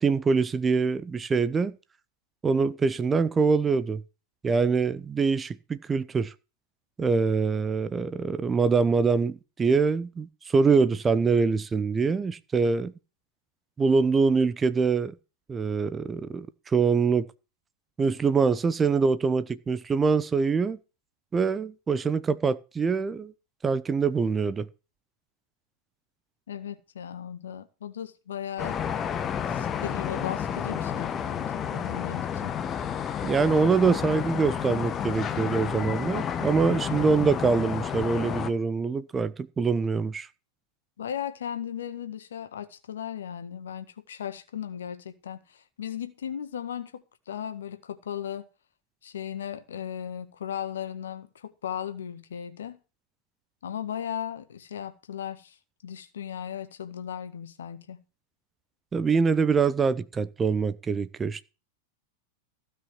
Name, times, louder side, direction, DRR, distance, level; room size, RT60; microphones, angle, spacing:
voice 1, 0.0-1.8 2.4-4.0 4.4-6.3 7.0-12.9 13.8-15.1 15.5-17.3 18.0-20.8 21.3-23.3 23.6-24.7 33.2-40.3 58.9-61.4, right 5 dB, 15° right, 0.8 m, -24 dB
voice 2, 26.5-28.9 29.5-32.6 41.0-48.5 49.0-52.8 53.6-55.6 55.8-58.0, left 9 dB, 65° left, 1.7 m, -36 dB
sound 1, 28.6-38.5, left 8 dB, 25° left, 1.1 m, -31 dB
16.0 x 5.8 x 7.0 m
figure-of-eight pair, 90°, 0 cm